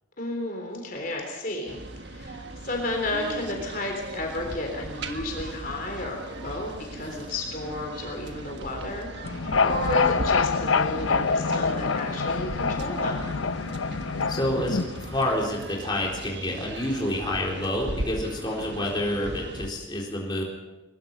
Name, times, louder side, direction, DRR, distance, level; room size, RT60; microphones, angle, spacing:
voice 1, 0.2-13.2, left 2 dB, 45° left, 1 dB, 3.6 m, -32 dB
sound 1, 1.7-19.7, right 1 dB, 55° right, 1.5 m, -38 dB
sound 2, 9.2-15.3, left 4 dB, 80° left, 0.7 m, -26 dB
voice 2, 14.3-20.4, left 1 dB, 20° left, -2 dB, 4.0 m, -28 dB
22.0 x 21.5 x 5.5 m, 1.1 s
head